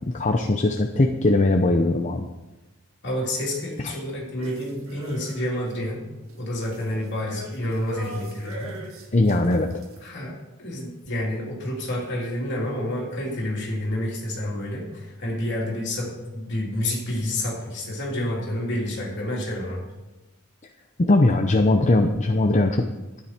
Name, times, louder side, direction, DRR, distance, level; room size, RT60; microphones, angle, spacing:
voice 1, 0.1-2.3 3.8-3.9 9.1-9.7 21.0-22.8, left 2 dB, 35° left, 4 dB, 0.7 m, -20 dB
voice 2, 3.0-6.0 6.4-8.8 10.0-19.9, left 1 dB, 55° left, -3 dB, 3.2 m, -29 dB
sound 1, 4.4-5.7 6.1-10.1, right 2 dB, 80° right, 1.9 m, -41 dB
12.5 x 9.8 x 4.4 m, 1.1 s
head